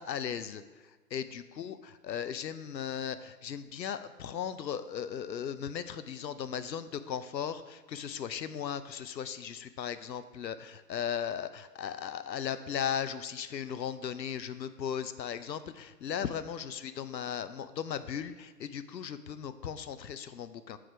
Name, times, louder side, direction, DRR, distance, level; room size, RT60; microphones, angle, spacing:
voice 1, 0.0-20.8, left 8 dB, 90° left, 12 dB, 0.7 m, -37 dB
7.9 x 4.9 x 4.6 m, 1.2 s
hypercardioid pair, 180°, 50 cm